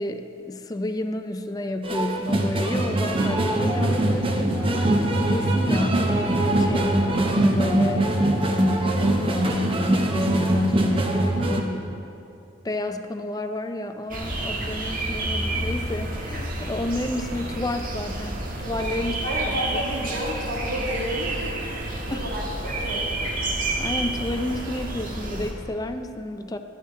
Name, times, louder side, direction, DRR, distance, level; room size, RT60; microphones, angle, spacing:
voice 1, 0.0-5.0 5.3-11.9 12.6-19.6 22.1-22.3 23.8-26.6, left 1 dB, 20° left, 7 dB, 0.5 m, -30 dB
sound 1, 1.8-11.6, right 1 dB, 30° right, 0.9 m, -22 dB
sound 2, 14.1-25.5, right 2 dB, 50° right, 1.4 m, -30 dB
voice 2, 19.2-23.1, equal, 75° right, -2 dB, 2.2 m, -31 dB
13.0 x 11.0 x 3.7 m, 2.8 s
head